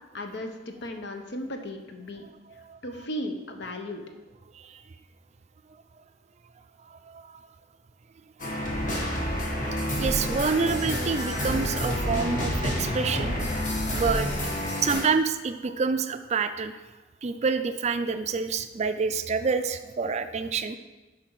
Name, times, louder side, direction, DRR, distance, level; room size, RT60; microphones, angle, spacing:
voice 1, 0.1-2.2 2.8-4.0, left 1 dB, 65° left, 5 dB, 0.8 m, -35 dB
voice 2, 6.9-7.4 10.0-14.5 14.8-16.8 17.2-20.8, right 5 dB, 35° right, 10 dB, 0.4 m, -28 dB
sound 1, 8.4-15.0, equal, 45° left, 1.5 m, -28 dB
7.6 x 5.1 x 4.6 m, 1.1 s
head